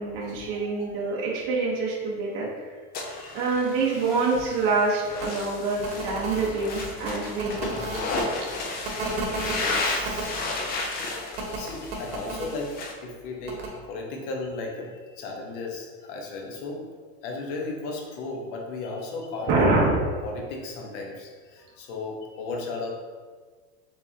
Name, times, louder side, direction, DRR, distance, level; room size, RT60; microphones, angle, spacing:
voice 1, 0.0-2.7 3.3-7.8 19.5-20.0, right 3 dB, 45° right, -5 dB, 1.0 m, -26 dB
voice 2, 0.5-0.9 3.0-3.5 7.8-8.1 9.0-10.3 11.0-19.5 19.8-19.9 20.2-22.9, left 3 dB, 70° left, 0 dB, 1.1 m, -36 dB
sound 1, 2.9-12.9, left 3 dB, 30° left, 0.6 m, -33 dB
sound 2, 5.2-5.3 5.8-8.2 8.8-10.4 11.3-12.5 13.5-13.7, right 2 dB, 80° right, 1.2 m, -33 dB
5.3 x 3.5 x 2.8 m, 1.5 s
cardioid pair, 160°, 29 cm